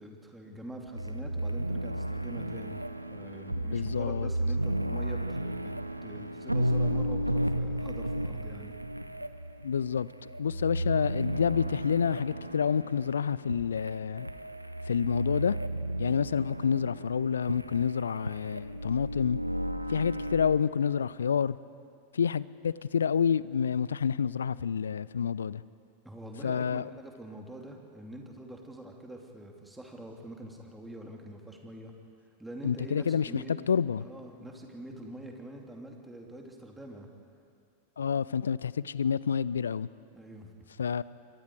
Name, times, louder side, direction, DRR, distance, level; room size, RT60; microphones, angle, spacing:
voice 1, 0.0-2.8 3.1-5.7 6.0-8.7 26.0-31.9 32.4-33.5 34.0-37.1 40.1-40.5, right 1 dB, 5° right, 1 dB, 3.0 m, -45 dB
sound 1, 0.9-20.6, right 1 dB, 85° right, 0.7 m, -33 dB
voice 2, 3.7-4.3 9.6-14.3 14.9-15.6 16.0-19.4 19.9-21.6 22.1-25.6 26.4-26.9 32.6-34.0 38.0-39.9 40.8-41.0, left 7 dB, 70° left, 19 dB, 0.5 m, -28 dB
27.0 x 23.0 x 4.8 m, 2.4 s
figure-of-eight pair, 90°, 0 cm